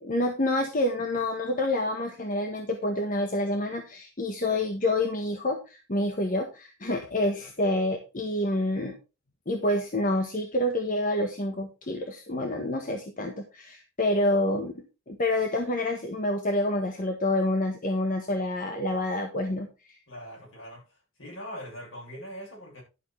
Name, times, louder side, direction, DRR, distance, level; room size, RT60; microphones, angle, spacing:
voice 1, 0.0-9.0 9.5-20.0, left 1 dB, 45° left, 1.4 m, -28 dB
voice 2, 20.1-20.8 21.2-22.8, equal, 70° left, 7.4 m, -41 dB
11.5 x 6.3 x 4.6 m
head